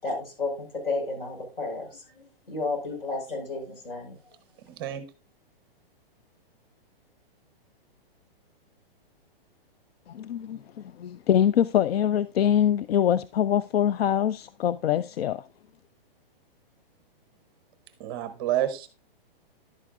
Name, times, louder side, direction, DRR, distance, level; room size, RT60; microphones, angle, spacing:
voice 1, 0.0-4.2, left 3 dB, 70° left, 5.0 m, -32 dB
voice 2, 4.6-5.0 18.0-18.9, right 12 dB, 25° right, 0.6 m, -29 dB
voice 3, 10.1-10.6 11.0-15.4, left 10 dB, 85° left, 0.5 m, -24 dB
11.0 x 8.3 x 2.4 m
hypercardioid pair, 160°, 30 cm